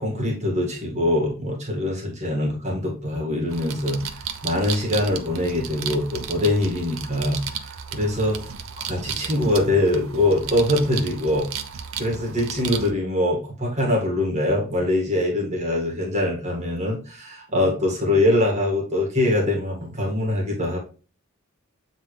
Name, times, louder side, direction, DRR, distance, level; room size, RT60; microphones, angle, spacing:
voice 1, 0.0-8.4 8.9-11.5 12.0-20.8, left 1 dB, 30° right, -2 dB, 2.1 m, -23 dB
sound 1, 3.5-12.9, right 7 dB, 65° right, 0.8 m, -34 dB
8.2 x 3.8 x 3.4 m, 0.35 s
head